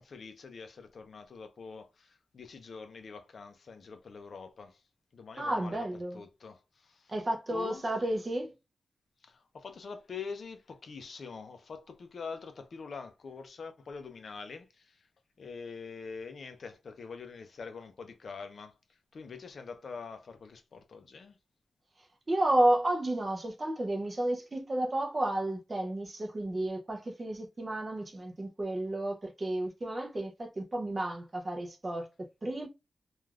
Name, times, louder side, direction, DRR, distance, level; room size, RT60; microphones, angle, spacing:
voice 1, 0.0-4.8 5.1-7.2 7.5-8.0 9.2-15.1 15.4-21.4, left 5 dB, 50° left, 0.4 m, -45 dB
voice 2, 5.4-6.2 7.1-8.5 22.3-32.7, right 1 dB, 25° right, 0.5 m, -31 dB
3.2 x 2.3 x 2.3 m
wide cardioid pair, 180°, 0 cm